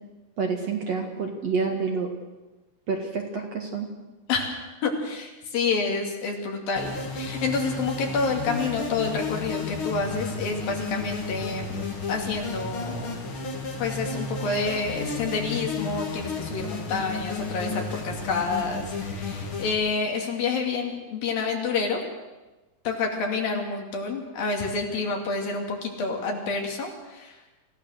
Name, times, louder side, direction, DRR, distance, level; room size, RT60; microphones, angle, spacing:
voice 1, 0.4-2.1 2.9-3.9, right 5 dB, 50° right, 2 dB, 2.6 m, -28 dB
voice 2, 4.3-11.8 12.1-13.2 13.8-22.0 22.8-27.4, left 4 dB, 65° left, 1 dB, 4.3 m, -28 dB
sound 1, 6.8-19.7, left 3 dB, 35° left, 2.7 m, -33 dB
27.0 x 16.0 x 6.6 m, 1.1 s
omnidirectional pair, 4.5 m